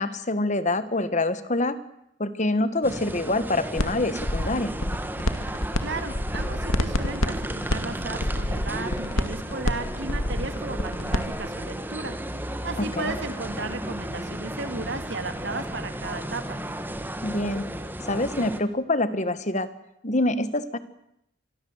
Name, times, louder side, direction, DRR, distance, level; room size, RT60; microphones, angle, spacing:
voice 1, 0.0-1.8 2.2-4.7 13.0-13.1 17.2-17.7 18.0-19.7 20.0-20.8, left 2 dB, 35° left, 13 dB, 1.5 m, -25 dB
sound 1, 2.8-18.6, right 1 dB, 10° right, 1.7 m, -34 dB
sound 2, 3.8-3.9 4.2-5.8 6.1-11.3, left 1 dB, 75° left, 2.3 m, -27 dB
voice 2, 5.8-16.6, right 3 dB, 55° right, 8 dB, 2.9 m, -35 dB
27.5 x 22.0 x 8.0 m, 0.79 s
head